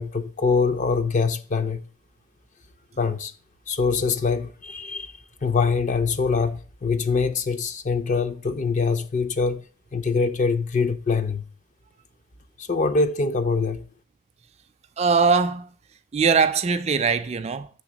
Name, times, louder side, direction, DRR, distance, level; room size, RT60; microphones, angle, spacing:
voice 1, 0.0-1.9 3.0-3.3 3.7-9.6 9.9-11.4 12.6-13.9, left 4 dB, 35° left, 0.5 m, -24 dB
voice 2, 15.0-15.7 16.1-17.7, right 5 dB, 30° right, 0.4 m, -21 dB
7.0 x 3.5 x 6.2 m
head